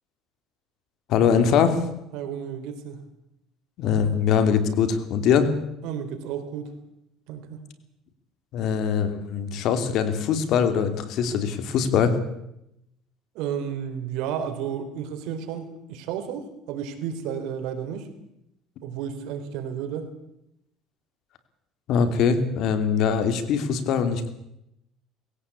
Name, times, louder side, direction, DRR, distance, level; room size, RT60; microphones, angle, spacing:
voice 1, 1.1-1.8 3.8-5.5 8.5-12.1 21.9-24.3, left 7 dB, 60° left, 9 dB, 3.0 m, -22 dB
voice 2, 2.1-3.0 5.8-6.7 7.3-7.6 13.3-18.1 18.8-20.1, right 8 dB, 75° right, 7 dB, 3.8 m, -32 dB
20.5 x 16.5 x 8.5 m, 0.82 s
cardioid pair, 125°, 0 cm